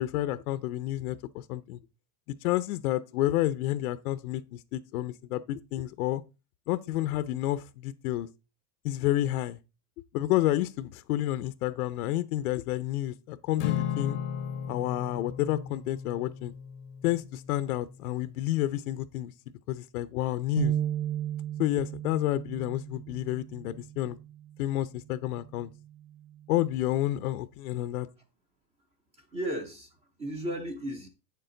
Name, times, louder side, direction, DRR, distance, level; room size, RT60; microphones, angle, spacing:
voice 1, 0.0-1.8 2.4-6.2 6.7-8.3 8.8-9.6 10.1-14.2 14.7-16.5 17.0-19.3 19.7-20.7 21.6-24.2 24.6-25.7 26.5-28.1, left 14 dB, 70° left, 0.7 m, -30 dB
Acoustic guitar / Strum, 13.6-18.0, left 9 dB, 25° left, 0.6 m, -35 dB
sound 1, 20.6-26.8, right 11 dB, 90° right, 1.2 m, -36 dB
voice 2, 29.2-31.1, right 1 dB, 15° right, 0.5 m, -35 dB
8.5 x 6.7 x 3.8 m
supercardioid pair, 170°, 45 cm